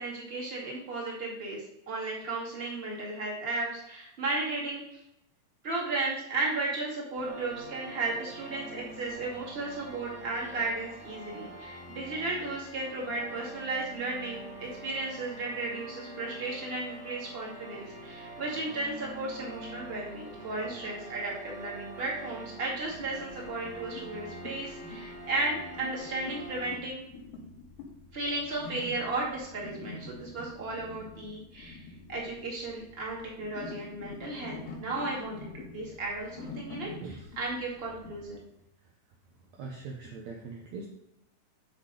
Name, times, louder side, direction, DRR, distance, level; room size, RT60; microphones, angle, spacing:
voice 1, 0.0-4.8 5.6-27.0 28.1-31.8 32.1-36.9 37.4-38.4, right 2 dB, 20° right, -4 dB, 1.8 m, -34 dB
sound 1, 7.1-26.8, right 1 dB, 25° left, 1.6 m, -45 dB
sound 2, 22.8-38.3, left 3 dB, 90° left, 3.3 m, -46 dB
voice 2, 37.0-37.4 38.8-38.9 39.5-40.9, right 4 dB, 75° right, 0 dB, 1.6 m, -42 dB
8.1 x 6.4 x 4.9 m, 0.83 s
omnidirectional pair, 4.5 m